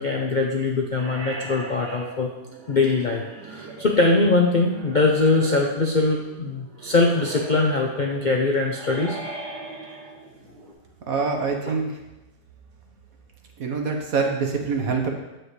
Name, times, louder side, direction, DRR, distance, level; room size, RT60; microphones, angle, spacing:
voice 1, 0.0-2.3 2.7-9.2 11.7-11.8, left 3 dB, 50° left, 0 dB, 0.5 m, -22 dB
sound 1, 1.0-10.7, right 3 dB, 90° right, 1.8 m, -40 dB
voice 2, 11.1-12.0 13.6-15.1, right 4 dB, 65° right, 2 dB, 1.5 m, -25 dB
9.2 x 7.6 x 3.2 m, 1.0 s
omnidirectional pair, 1.7 m